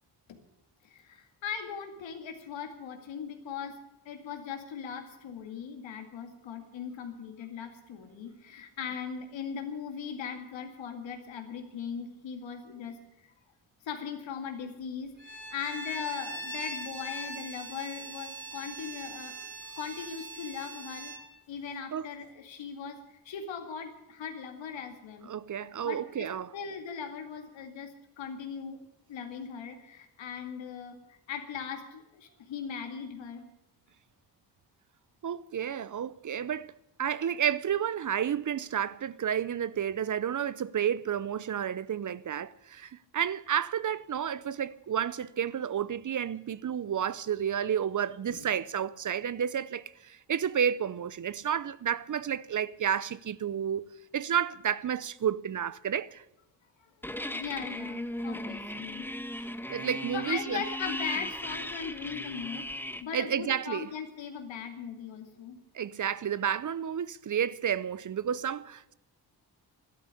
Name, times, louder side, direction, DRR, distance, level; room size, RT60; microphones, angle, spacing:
voice 1, 0.8-13.3 13.8-19.5 19.8-21.2 21.5-25.3 25.8-33.4 48.3-48.5 56.8-56.9 57.3-59.1 59.9-65.6, left 7 dB, 85° left, 2.3 m, -39 dB
Bowed string instrument, 15.2-21.3, right 1 dB, 25° right, 3.7 m, -41 dB
voice 2, 25.3-26.5 35.2-36.7 37.0-56.2 59.4-60.6 63.1-63.9 65.7-68.9, right 8 dB, 45° right, 0.7 m, -31 dB
sound 1, 57.0-63.0, left 1 dB, 5° left, 1.1 m, -37 dB
12.5 x 12.0 x 8.3 m
cardioid pair, 65°, 44 cm